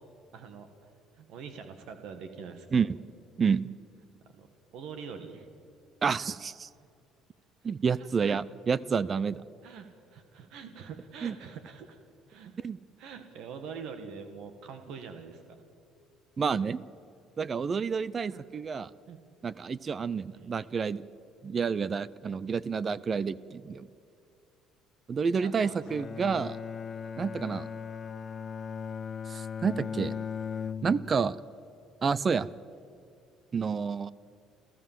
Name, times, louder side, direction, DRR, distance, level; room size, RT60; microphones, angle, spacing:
voice 1, 0.3-0.7 1.1-2.8 4.3-5.5 8.0-8.3 9.6-12.0 12.3-12.5 13.0-15.6 18.3-18.4 19.1-19.2 20.3-20.5 25.3-26.0, right 6 dB, 65° right, 7 dB, 1.7 m, -44 dB
voice 2, 6.0-6.7 7.6-9.4 11.2-11.4 12.6-12.8 16.4-16.8 17.4-18.9 19.4-21.0 21.4-23.9 25.1-26.6 27.2-27.7 29.3-30.1 30.8-31.4 32.0-32.5 33.5-34.1, right 5 dB, 25° right, 19 dB, 0.5 m, -29 dB
Bowed string instrument, 25.8-31.3, left 6 dB, 30° left, 0.5 m, -38 dB
28.5 x 14.5 x 7.5 m, 2.6 s
cardioid pair, 150°, 0 cm